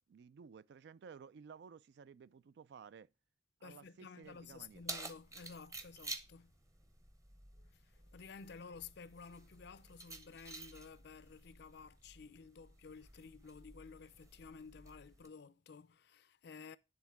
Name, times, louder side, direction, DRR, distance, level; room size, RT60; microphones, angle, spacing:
voice 1, 0.0-3.1 3.6-4.9, right 6 dB, 65° right, 0.3 m, -55 dB
voice 2, 3.6-6.6 7.6-16.8, left 5 dB, 65° left, 0.5 m, -53 dB
Keys jangling, 4.2-15.3, right 2 dB, 20° right, 0.8 m, -52 dB
9.5 x 3.7 x 4.6 m
head